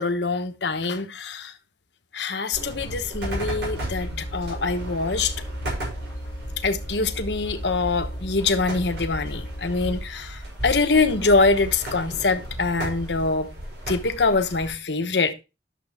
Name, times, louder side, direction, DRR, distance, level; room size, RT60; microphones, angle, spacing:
voice 1, 0.0-1.5 2.1-5.3 6.6-13.5 13.9-15.3, left 3 dB, 80° left, 1.1 m, -24 dB
sound 1, 2.5-14.7, right 1 dB, 85° right, 6.6 m, -35 dB
sound 2, 3.2-10.1, equal, 35° left, 0.8 m, -36 dB
11.0 x 7.0 x 3.5 m
head